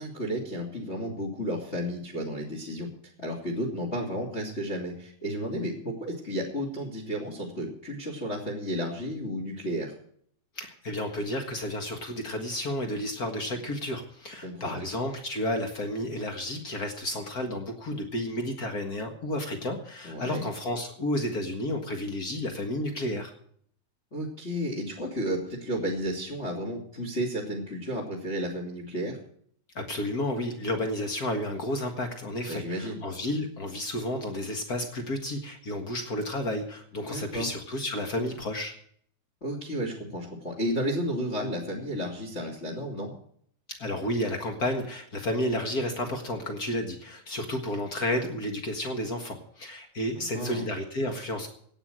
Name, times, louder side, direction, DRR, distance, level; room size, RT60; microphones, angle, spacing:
voice 1, 0.0-2.9 3.2-9.9 14.3-14.8 20.0-20.4 24.1-29.2 32.5-33.0 37.1-37.5 39.4-43.1 50.2-50.6, equal, 20° left, 2 dB, 2.5 m, -32 dB
voice 2, 10.5-23.3 29.7-38.7 43.8-51.5, left 1 dB, 90° left, 5 dB, 0.8 m, -31 dB
17.5 x 9.0 x 6.3 m, 0.62 s
omnidirectional pair, 4.7 m